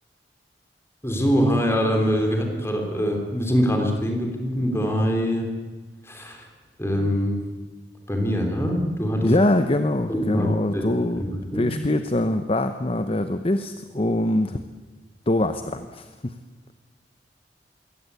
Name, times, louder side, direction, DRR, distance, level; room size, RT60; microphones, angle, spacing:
voice 1, 1.0-5.5 6.0-6.4 6.8-7.5 8.1-9.3 10.1-10.5 10.7-10.9 11.2-11.7, equal, 15° left, 3 dB, 3.5 m, -23 dB
voice 2, 9.2-14.6 15.3-16.3, left 1 dB, 30° left, 9 dB, 0.8 m, -23 dB
22.5 x 17.5 x 8.3 m, 1.3 s
head